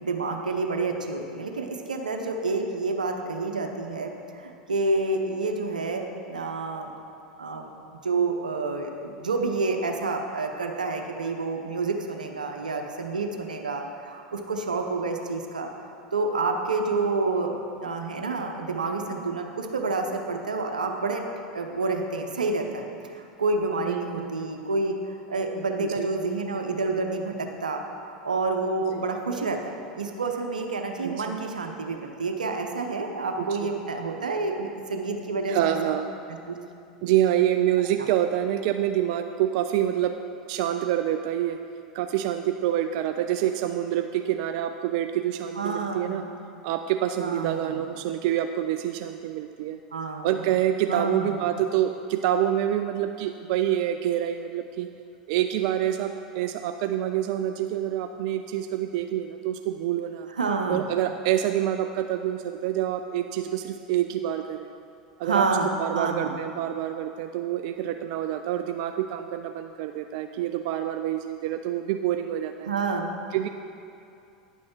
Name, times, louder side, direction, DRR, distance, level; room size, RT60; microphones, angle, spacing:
voice 1, 0.0-6.9 7.4-21.2 21.5-35.9 36.5-36.6 38.0-38.1 45.6-46.4 47.2-47.8 49.9-50.5 50.9-51.4 60.4-60.9 65.2-66.4 72.7-73.1, right 3 dB, 85° right, 4 dB, 0.8 m, -29 dB
voice 2, 23.9-24.4 25.8-26.1 28.9-29.0 31.0-31.4 33.4-33.7 35.5-36.1 37.0-40.2 40.5-41.6 41.9-46.2 46.6-49.8 50.2-54.9 55.3-60.3 60.7-64.7 65.2-65.5 65.8-72.7 73.3-73.5, right 11 dB, 55° right, 7 dB, 0.3 m, -27 dB
9.9 x 6.3 x 4.5 m, 2.6 s
hypercardioid pair, 90°, 4 cm